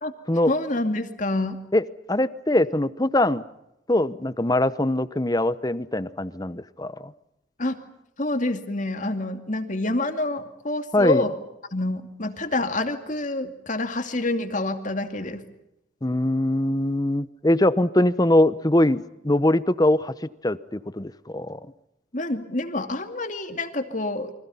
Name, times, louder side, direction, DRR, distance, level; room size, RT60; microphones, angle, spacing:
voice 1, 0.5-1.6 7.6-7.8 8.2-11.4 11.7-15.4 22.1-24.3, left 2 dB, 40° left, 7 dB, 2.5 m, -27 dB
voice 2, 1.7-3.4 3.9-7.1 10.9-11.2 16.0-20.1 20.4-21.6, left 1 dB, 20° left, 15 dB, 0.9 m, -22 dB
29.5 x 24.5 x 5.7 m, 0.86 s
head